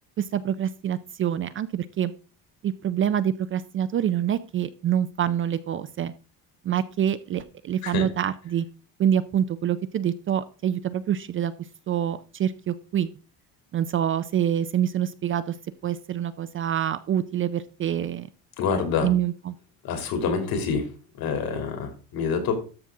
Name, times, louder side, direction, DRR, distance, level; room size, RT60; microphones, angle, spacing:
voice 1, 0.2-2.1 2.6-6.1 6.6-8.7 9.0-11.5 11.9-13.1 13.7-15.5 15.8-18.3 19.0-19.6, right 9 dB, 35° right, 14 dB, 0.4 m, -26 dB
voice 2, 18.6-19.1 19.8-20.9 21.2-22.5, left 5 dB, 65° left, 5 dB, 2.9 m, -26 dB
13.0 x 5.8 x 3.7 m, 0.36 s
cardioid pair, 145°, 39 cm